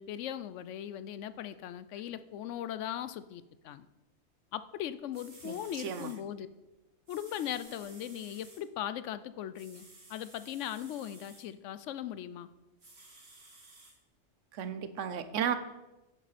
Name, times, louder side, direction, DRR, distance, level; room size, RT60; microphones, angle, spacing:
voice 1, 0.0-3.9 4.5-6.5 7.1-12.5, left 11 dB, 75° left, 14 dB, 0.9 m, -39 dB
sound 1, 4.8-4.9 5.1-6.2 7.1-8.6 9.5-11.4 12.8-13.9 14.6-14.7, right 2 dB, 55° right, 2.4 m, -55 dB
voice 2, 5.4-6.1 14.5-15.5, right 8 dB, 70° right, 11 dB, 1.1 m, -34 dB
9.5 x 8.9 x 4.2 m, 1.0 s
omnidirectional pair, 1.3 m